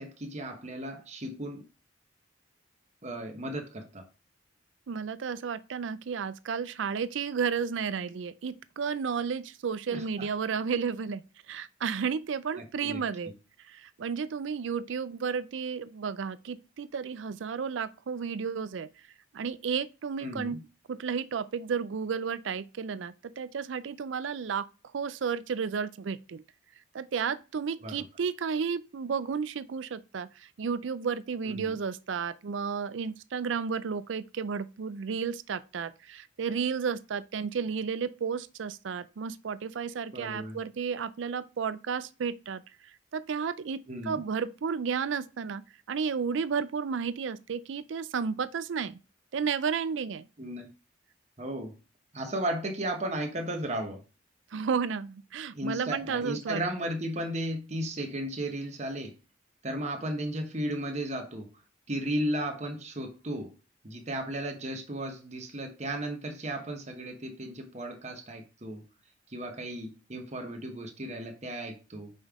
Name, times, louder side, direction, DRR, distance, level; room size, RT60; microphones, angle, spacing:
voice 1, 0.0-1.6 3.0-4.1 9.9-10.3 12.5-13.0 20.2-20.6 27.8-27.9 31.4-31.8 40.1-40.6 43.9-44.2 50.4-50.7 51.4-51.7 52.1-54.0 55.5-59.1 59.6-61.5 61.9-63.5 63.8-68.8 69.3-72.1, right 1 dB, 35° right, 1.1 m, -35 dB
voice 2, 4.9-11.2 11.5-13.3 13.7-18.9 19.3-20.6 20.9-24.7 24.9-26.4 26.9-42.6 43.1-45.6 45.9-49.0 49.3-50.3 54.5-56.6, right 6 dB, 75° right, 0.4 m, -32 dB
5.4 x 5.3 x 3.6 m
head